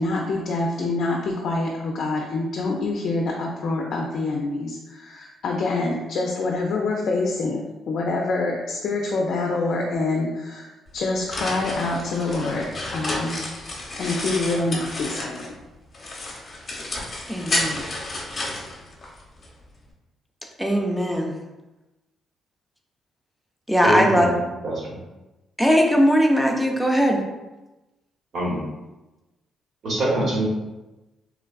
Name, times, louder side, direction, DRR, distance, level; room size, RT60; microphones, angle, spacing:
voice 1, 0.0-15.5, left 2 dB, 65° left, -1 dB, 0.4 m, -26 dB
sound 1, 10.9-15.6 15.9-19.5, left 2 dB, 35° left, 0.7 m, -31 dB
voice 2, 17.3-17.8 20.6-21.4 23.7-24.3 25.6-27.2, equal, 5° right, 1 dB, 0.5 m, -19 dB
voice 3, 23.8-24.3 24.6-25.0 28.3-28.6 29.8-30.4, right 1 dB, 60° right, -5 dB, 1.2 m, -24 dB
3.2 x 2.3 x 2.3 m, 1.1 s
cardioid pair, 90°, 0 cm